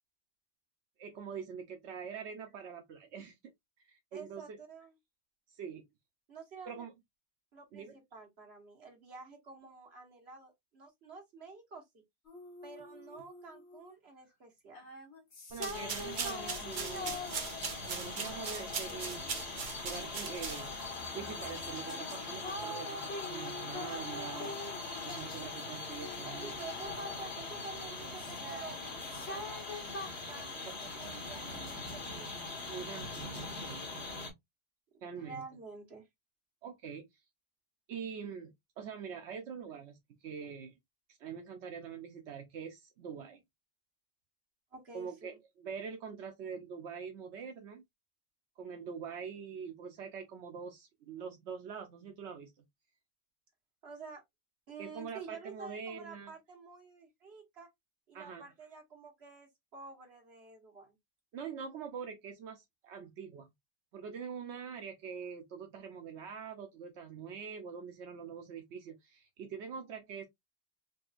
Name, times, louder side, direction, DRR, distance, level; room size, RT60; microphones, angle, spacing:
voice 1, 1.0-3.4 3.8-4.6 5.5-5.8 6.7-6.9 7.7-8.0 15.5-17.2 17.8-24.6 25.0-26.5 30.7-30.8 32.7-33.9 35.0-35.4 36.6-37.2 37.9-40.8 41.2-43.4 44.9-47.8 48.6-52.6 54.8-56.3 58.1-58.5 61.3-63.5 63.9-70.2, right 6 dB, 90° right, 1.0 m, -44 dB
voice 2, 4.1-4.9 6.3-6.9 7.5-12.0 12.6-14.9 26.2-29.6 30.3-32.4 35.1-36.1 40.3-40.4 44.7-45.1 53.8-54.2 54.7-57.7 58.1-61.0, right 4 dB, 70° right, 1.7 m, -50 dB
sound 1, 12.3-13.9 14.6-20.2 20.8-27.7 28.0-30.1, left 1 dB, 80° left, 1.6 m, -46 dB
sound 2, 15.5-20.9, right 6 dB, 50° right, 0.8 m, -40 dB
sound 3, 15.7-34.3, left 3 dB, 65° left, 2.0 m, -42 dB
5.1 x 2.5 x 2.4 m
omnidirectional pair, 1.1 m